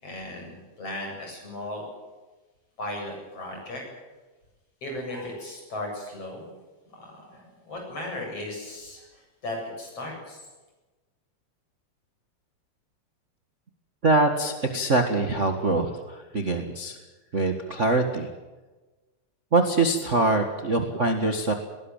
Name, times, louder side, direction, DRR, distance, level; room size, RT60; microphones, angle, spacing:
voice 1, 0.0-1.8 2.8-3.8 4.8-6.5 7.0-10.4, left 1 dB, 55° left, 1 dB, 9.1 m, -36 dB
voice 2, 14.0-17.0 17.3-18.3 19.5-21.5, right 2 dB, 30° right, 5 dB, 1.6 m, -24 dB
20.5 x 18.5 x 9.1 m, 1.2 s
omnidirectional pair, 3.4 m